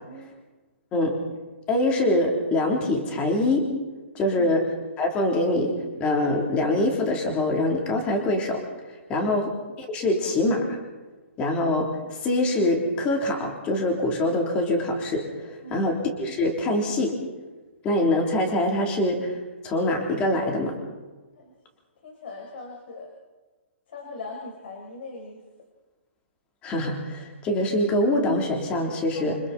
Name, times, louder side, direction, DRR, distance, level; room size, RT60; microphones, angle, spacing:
voice 1, 0.9-1.2 1.7-3.7 4.1-4.7 5.0-8.6 9.1-9.5 9.8-10.8 11.4-17.2 17.8-19.4 19.6-20.8 26.6-29.4, left 1 dB, 15° left, 1 dB, 3.4 m, -24 dB
voice 2, 22.0-23.1 23.9-25.4 29.1-29.3, left 2 dB, 55° left, 1 dB, 4.9 m, -40 dB
28.0 x 26.5 x 4.3 m, 1.2 s
hypercardioid pair, 165°, 7 cm